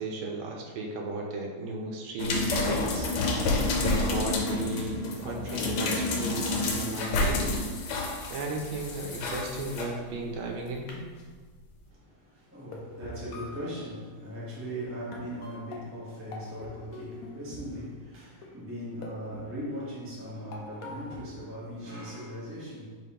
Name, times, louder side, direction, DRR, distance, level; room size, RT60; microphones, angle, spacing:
voice 1, 0.0-3.1 3.8-7.6 8.3-11.0, right 2 dB, 80° right, 1.5 m, -35 dB
sound 1, 2.2-9.8 10.9-11.0, left 2 dB, 85° left, 1.5 m, -29 dB
voice 2, 11.9-23.0, equal, 10° right, 0.7 m, -39 dB
sound 2, 12.6-13.9 14.8-14.9 15.1-17.9 18.4-18.7 19.0-20.0 20.5-21.6, left 2 dB, 65° left, 0.9 m, -44 dB
4.9 x 3.7 x 2.8 m
omnidirectional pair, 2.2 m